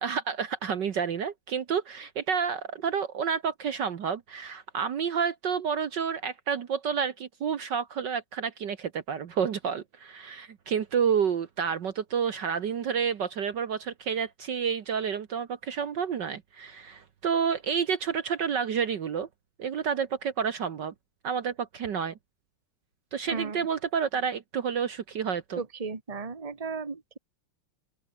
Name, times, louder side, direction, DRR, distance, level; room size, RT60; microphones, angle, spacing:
voice 1, 0.0-19.3 19.6-20.9 21.2-22.1 23.1-25.6, right 7 dB, 55° right, 1.7 m, -29 dB
voice 2, 23.3-23.7 25.6-27.2, right 4 dB, 20° right, 1.6 m, -35 dB
open air
omnidirectional pair, 2.4 m